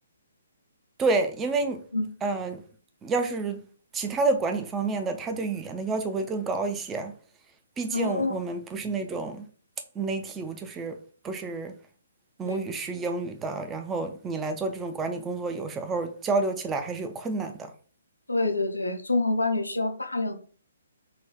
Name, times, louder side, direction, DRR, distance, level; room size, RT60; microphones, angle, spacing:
voice 1, 1.0-1.8 2.2-2.6 3.0-3.6 3.9-7.2 7.8-9.5 10.0-11.0 11.2-11.8 12.4-17.7, right 3 dB, 15° right, 0.4 m, -29 dB
voice 2, 7.9-8.4 12.4-12.6 18.3-20.3, left 2 dB, 85° left, 0.5 m, -27 dB
4.0 x 2.2 x 2.8 m
figure-of-eight pair, 130°, 0 cm